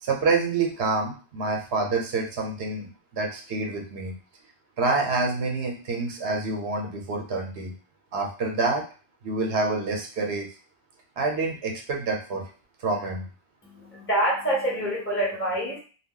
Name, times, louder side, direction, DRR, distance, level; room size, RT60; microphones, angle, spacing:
voice 1, 0.0-4.1 4.8-7.7 8.1-8.8 9.2-10.5 11.2-12.4 12.8-13.2, right 3 dB, 75° right, 1 dB, 0.9 m, -27 dB
voice 2, 13.6-15.8, right 1 dB, 15° left, -4 dB, 0.9 m, -26 dB
2.2 x 2.2 x 3.6 m, 0.37 s
omnidirectional pair, 1.1 m